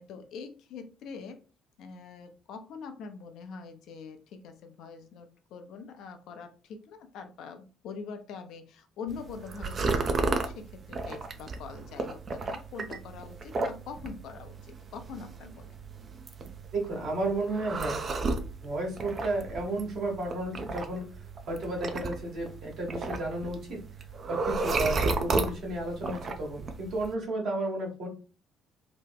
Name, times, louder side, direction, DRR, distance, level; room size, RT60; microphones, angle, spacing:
voice 1, 0.0-1.4 1.8-15.8, left 5 dB, 65° left, 6 dB, 0.5 m, -44 dB
sound 1, 9.1-27.1, right 3 dB, 45° right, 0.5 m, -34 dB
voice 2, 16.7-18.0 18.6-23.8 24.3-28.1, right 2 dB, 60° right, -1 dB, 1.4 m, -33 dB
2.9 x 2.2 x 3.5 m, 0.36 s
hypercardioid pair, 50°, 0 cm